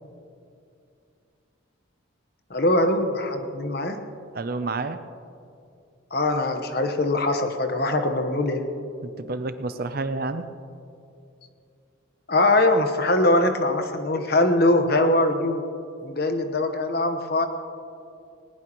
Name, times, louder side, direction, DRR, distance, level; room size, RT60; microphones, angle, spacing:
voice 1, 2.5-4.0 6.1-8.6 12.3-15.6 16.0-17.5, left 2 dB, 50° left, 6 dB, 1.1 m, -22 dB
voice 2, 4.3-5.0 9.0-10.5, right 3 dB, 45° right, 10 dB, 0.6 m, -29 dB
19.5 x 19.0 x 3.1 m, 2.6 s
head